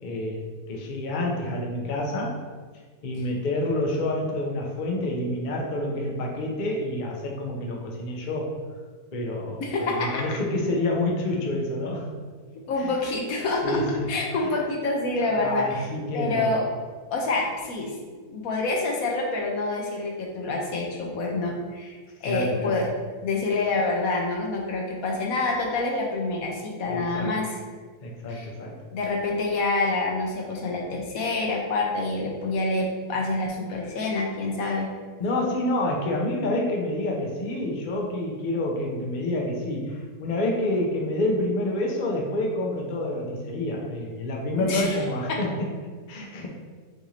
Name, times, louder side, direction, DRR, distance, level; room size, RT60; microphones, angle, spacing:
voice 1, 0.0-2.4 3.0-8.5 9.1-12.1 12.8-13.0 13.6-14.1 15.4-16.6 22.2-22.7 26.9-27.3 28.0-28.7 35.2-45.5 46.1-46.5, left 1 dB, 45° left, -1 dB, 0.7 m, -28 dB
voice 2, 9.6-10.4 12.7-13.8 14.1-15.9 16.1-16.7 17.1-18.0 18.3-22.9 23.2-27.6 28.3-28.5 28.9-34.9 44.6-45.4, left 2 dB, 70° left, 0 dB, 1.1 m, -27 dB
6.3 x 2.6 x 3.2 m, 1.5 s
omnidirectional pair, 1.6 m